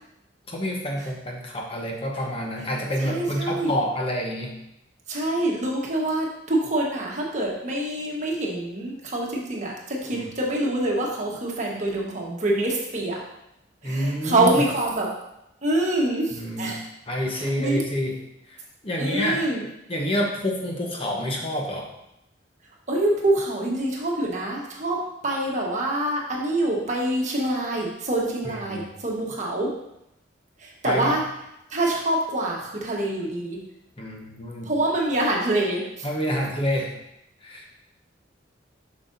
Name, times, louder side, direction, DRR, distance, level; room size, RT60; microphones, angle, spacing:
voice 1, 0.5-4.6 10.1-10.3 13.8-14.6 16.3-16.7 17.1-18.2 18.5-19.4 19.9-21.9 28.4-28.9 30.8-31.1 34.0-34.7 36.0-36.9 37.4-37.7, equal, 30° left, 0 dB, 1.0 m, -28 dB
voice 2, 3.0-3.7 5.1-13.2 13.8-15.1 15.6-16.8 17.3-17.8 19.0-19.6 22.9-29.7 30.6-31.2 31.7-33.6 34.6-36.1, right 1 dB, 40° right, -2 dB, 1.3 m, -25 dB
7.6 x 6.4 x 2.7 m, 0.83 s
head